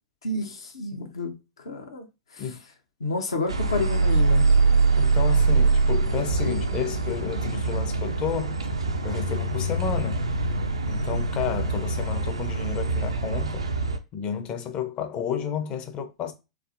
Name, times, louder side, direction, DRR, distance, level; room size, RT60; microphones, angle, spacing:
voice 1, 0.2-2.1 2.3-2.6 3.0-4.4, left 3 dB, 75° left, 0.7 m, -30 dB
sound 1, 3.5-14.0, right 3 dB, 90° right, 0.4 m, -24 dB
voice 2, 4.9-8.6 9.0-10.2 10.9-13.6 14.1-16.3, left 8 dB, 35° left, 0.6 m, -31 dB
3.4 x 2.0 x 2.5 m
figure-of-eight pair, 95°, 3 cm